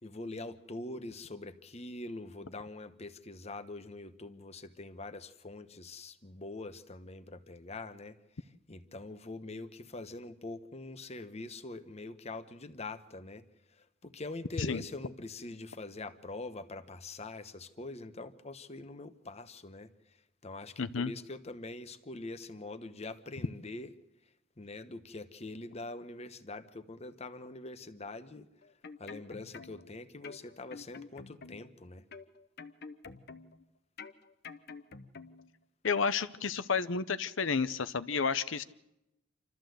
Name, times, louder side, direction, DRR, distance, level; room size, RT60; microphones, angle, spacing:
voice 1, 0.0-13.4 13.8-19.9 20.4-23.9 24.6-28.5 29.0-32.0, left 2 dB, 35° left, 1.0 m, -44 dB
voice 2, 20.8-21.1 35.8-38.6, left 5 dB, 80° left, 0.8 m, -31 dB
sound 1, 28.6-29.9 30.2-31.8 32.1-33.6 34.0-35.5 35.8-36.0, left 4 dB, 55° left, 1.0 m, -48 dB
27.0 x 13.5 x 7.9 m
head